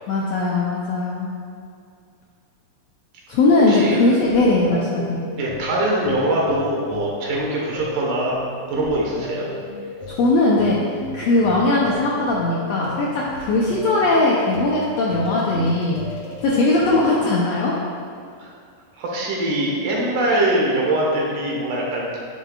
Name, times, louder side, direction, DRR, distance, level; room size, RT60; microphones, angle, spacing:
voice 1, 0.1-1.3 3.3-5.2 10.1-16.0 16.4-17.7, left 2 dB, 75° left, -4 dB, 1.5 m, -19 dB
voice 2, 3.7-4.0 5.4-9.5 18.4-18.5 18.9-22.2, right 1 dB, 75° right, -3 dB, 2.9 m, -22 dB
sound 1, 3.9-17.1, left 2 dB, 60° left, 1.7 m, -36 dB
10.5 x 7.4 x 2.4 m, 2.4 s
omnidirectional pair, 3.8 m